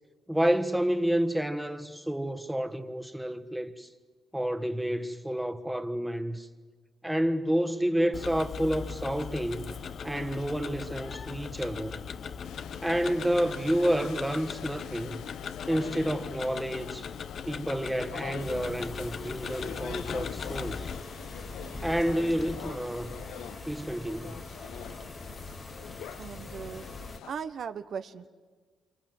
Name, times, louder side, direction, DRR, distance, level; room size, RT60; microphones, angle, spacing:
voice 1, 0.3-3.9 4.3-6.5 7.0-9.7 10.0-12.0 12.8-15.2 15.7-17.1 17.5-20.9 21.8-23.1 23.7-24.4, equal, 5° right, 1.5 m, -29 dB
Tick-tock, 8.1-21.0, left 6 dB, 50° left, 0.8 m, -39 dB
sound 1, 12.4-27.3, left 9 dB, 85° left, 1.0 m, -44 dB
sound 2, 18.4-27.2, left 2 dB, 20° left, 1.0 m, -43 dB
voice 2, 26.2-26.8 27.3-28.3, right 7 dB, 60° right, 1.0 m, -38 dB
28.0 x 26.0 x 7.8 m
cardioid pair, 90°, 0 cm